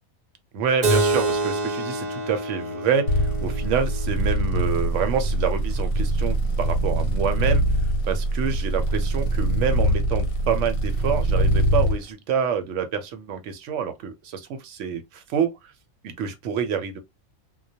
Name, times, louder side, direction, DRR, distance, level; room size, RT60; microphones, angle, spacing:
voice 1, 0.5-7.6 8.1-15.7 16.0-17.0, right 7 dB, 70° right, 0.8 m, -27 dB
Keyboard (musical), 0.8-5.9, right 2 dB, 55° right, 0.5 m, -28 dB
sound 1, 3.1-12.0, right 1 dB, 90° left, 1.0 m, -23 dB
2.2 x 2.1 x 2.7 m
omnidirectional pair, 1.4 m